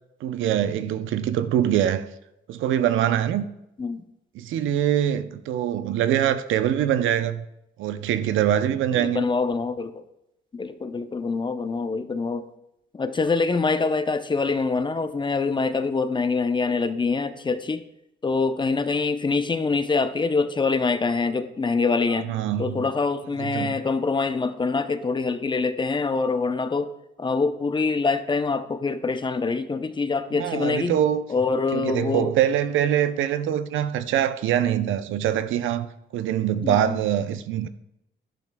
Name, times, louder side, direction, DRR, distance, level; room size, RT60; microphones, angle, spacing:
voice 1, 0.2-2.1 2.5-3.5 4.3-7.4 7.8-9.2 22.1-22.9 23.4-23.8 30.3-31.2 31.7-37.7, right 10 dB, 80° right, 0.6 m, -24 dB
voice 2, 8.9-10.0 10.5-12.4 12.9-17.9 18.2-22.3 22.6-26.9 27.2-31.0 31.3-32.3 36.6-37.0, left 4 dB, 25° left, 0.6 m, -25 dB
10.5 x 10.5 x 2.2 m
cardioid pair, 90°, 20 cm